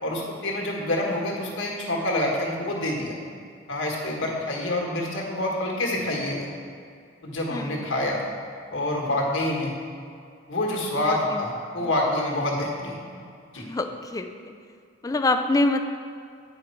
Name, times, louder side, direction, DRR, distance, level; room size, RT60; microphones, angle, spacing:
voice 1, 0.0-3.2 3.7-6.5 7.2-8.2 8.7-9.7 10.5-13.2 13.5-13.6, left 1 dB, 75° left, -1 dB, 1.5 m, -27 dB
voice 2, 7.5-7.9 11.0-11.4 11.7-11.9 13.6-14.5 15.0-15.8, left 2 dB, 20° left, 7 dB, 0.4 m, -26 dB
9.2 x 5.1 x 4.5 m, 2.3 s
head